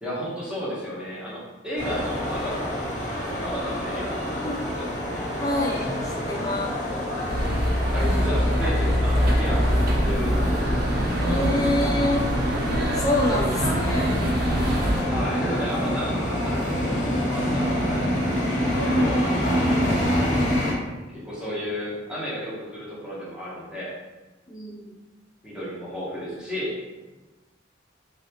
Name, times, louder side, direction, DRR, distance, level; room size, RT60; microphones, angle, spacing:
voice 1, 0.0-2.8 3.4-4.9 7.9-10.8 15.1-19.2 21.1-23.9 25.4-26.8, equal, 5° right, -8 dB, 0.9 m, -33 dB
sound 1, 1.8-20.7, equal, 40° left, 0.9 m, -26 dB
voice 2, 5.4-6.7 11.2-12.3 12.9-14.1 24.5-24.9, left 1 dB, 20° left, -3 dB, 0.5 m, -27 dB
sound 2, 7.3-15.0, equal, 50° right, 0.5 m, -24 dB
3.2 x 2.7 x 2.8 m, 1.2 s
head